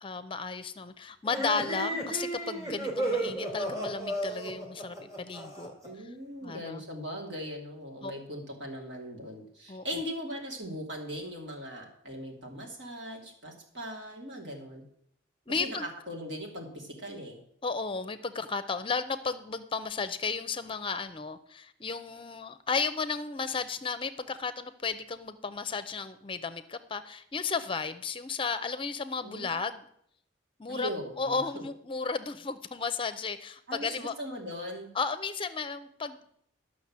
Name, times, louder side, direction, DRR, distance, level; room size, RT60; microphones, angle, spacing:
voice 1, 0.0-5.7 6.4-6.8 8.0-8.1 9.7-10.0 15.5-15.9 17.6-29.8 30.6-30.9 31.2-34.1 34.9-36.3, left 4 dB, 30° left, 11 dB, 0.6 m, -34 dB
sound 1, 1.2-5.9, right 1 dB, 20° right, 2.6 m, -33 dB
voice 2, 5.8-14.8 15.5-17.4 29.2-29.6 30.7-31.4 33.7-34.9, equal, 70° right, 0 dB, 3.0 m, -39 dB
11.5 x 6.3 x 7.4 m, 0.67 s
head